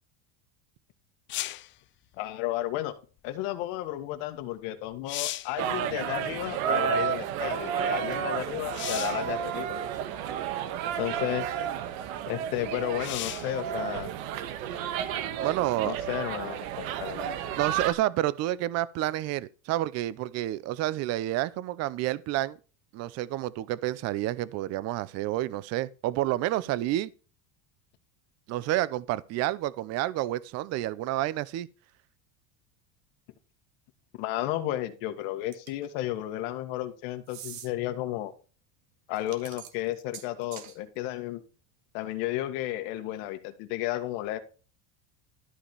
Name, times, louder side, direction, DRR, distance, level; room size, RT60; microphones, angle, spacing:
sound 1, 1.3-1.7 4.4-4.5 4.9-5.6 8.7-9.3 10.3-10.4 13.0-13.6 17.1-17.2, left 16 dB, 30° left, 0.4 m, -35 dB
voice 1, 2.2-2.9 3.2-9.8 11.0-11.6 12.3-14.1 15.8-17.3 34.2-38.3 39.1-41.4 41.9-44.4, left 14 dB, 65° left, 1.8 m, -33 dB
sound 2, 5.6-17.9, right 9 dB, 85° right, 1.5 m, -32 dB
voice 2, 15.4-16.0 17.6-22.6 22.9-27.1 28.5-31.7, right 15 dB, 40° right, 0.6 m, -29 dB
sound 3, 35.5-35.9 37.3-37.7 39.1-40.8, right 10 dB, 60° right, 2.1 m, -44 dB
13.0 x 5.1 x 5.4 m
cardioid pair, 155°, 41 cm